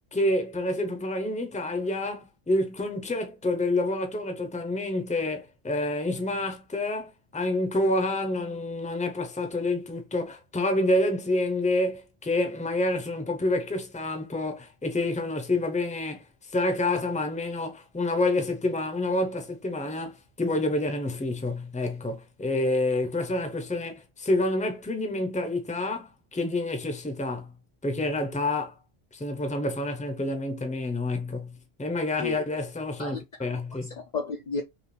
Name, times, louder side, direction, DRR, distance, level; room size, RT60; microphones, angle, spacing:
voice 1, 0.1-27.5 27.8-28.7 29.1-31.5 31.8-33.9, left 2 dB, 10° left, 0.6 m, -28 dB
voice 2, 33.0-34.6, left 4 dB, 50° left, 0.6 m, -34 dB
5.4 x 2.4 x 3.2 m
omnidirectional pair, 1.1 m